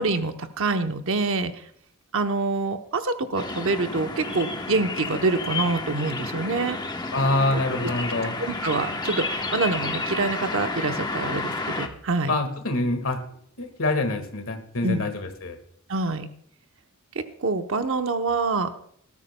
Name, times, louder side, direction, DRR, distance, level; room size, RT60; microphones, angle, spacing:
voice 1, 0.0-1.5 2.1-6.8 8.4-12.3 14.8-15.1 15.9-16.3 17.1-18.7, right 3 dB, 65° right, 7 dB, 0.8 m, -26 dB
sound 1, 3.4-11.9, left 3 dB, 20° left, 0.9 m, -31 dB
voice 2, 7.1-8.4 12.3-13.2 13.6-15.6, left 2 dB, 65° left, 7 dB, 1.7 m, -25 dB
19.0 x 13.0 x 2.2 m, 0.65 s
head